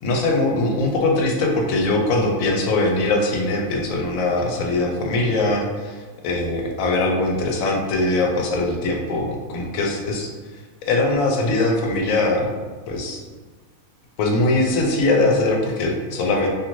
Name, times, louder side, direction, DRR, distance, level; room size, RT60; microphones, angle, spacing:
voice 1, 0.0-10.3 10.8-12.5 12.9-13.2 14.2-16.5, left 2 dB, 75° left, 1 dB, 1.0 m, -21 dB
2.6 x 2.5 x 3.0 m, 1.4 s
omnidirectional pair, 1.5 m